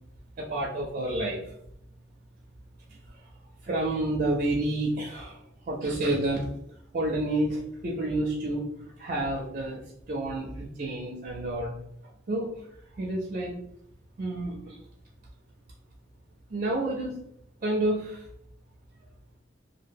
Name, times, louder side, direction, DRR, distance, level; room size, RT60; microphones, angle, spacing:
voice 1, 0.4-1.4 3.6-5.4 5.7-6.5 6.9-8.6 9.0-9.8 10.1-11.7 12.3-12.5 13.0-13.6 14.2-14.8 16.5-17.1 17.6-18.2, right 1 dB, 45° right, -1 dB, 0.4 m, -29 dB
2.1 x 2.0 x 3.3 m, 0.72 s
head